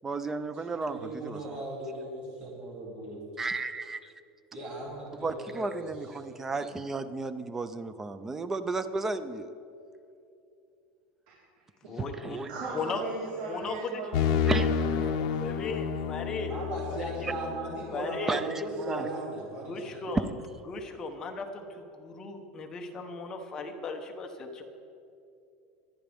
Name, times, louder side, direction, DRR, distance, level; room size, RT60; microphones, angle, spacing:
voice 1, 0.0-1.0 1.2-1.6 3.4-4.0 5.2-9.5 12.0-12.5 14.5-14.7 18.3-18.5 18.9-19.1, right 3 dB, 10° right, 12 dB, 0.5 m, -33 dB
voice 2, 0.5-3.2 4.5-6.1 16.5-20.0, right 1 dB, 30° right, -4 dB, 2.7 m, -37 dB
voice 3, 11.8-12.4 12.7-13.0 13.4-14.0 15.4-16.5 16.9-17.0 17.9-18.4 19.6-20.2 20.7-24.6, left 3 dB, 20° left, 3 dB, 1.0 m, -37 dB
voice 4, 12.4-15.3, right 3 dB, 65° right, -8 dB, 4.1 m, -38 dB
sound 1, 14.1-17.9, left 7 dB, 60° left, 0.9 m, -29 dB
25.0 x 10.0 x 3.5 m, 2.6 s
supercardioid pair, 170°, 3 cm